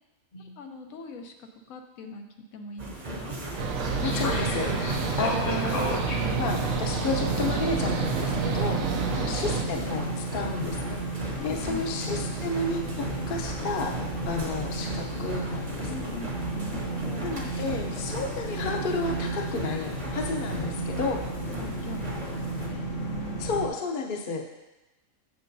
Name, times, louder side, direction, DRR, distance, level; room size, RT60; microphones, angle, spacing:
voice 1, 0.6-2.2 2.5-3.4 9.1-9.5 11.4-11.9 15.7-17.5 20.9-21.1 21.5-23.5, left 2 dB, 85° left, 4 dB, 1.2 m, -42 dB
sound 1, 2.8-22.7, right 2 dB, 35° right, 0.9 m, -37 dB
sound 2, 3.6-9.6, right 5 dB, 80° right, 1.0 m, -30 dB
sound 3, 4.0-23.7, right 1 dB, 65° left, 1.2 m, -33 dB
voice 2, 4.0-5.9 6.3-8.8 9.2-11.0 11.4-14.0 14.3-16.1 17.2-21.2 23.4-24.5, left 3 dB, 50° left, 2 dB, 0.8 m, -32 dB
7.4 x 7.4 x 2.6 m, 1.0 s
omnidirectional pair, 1.4 m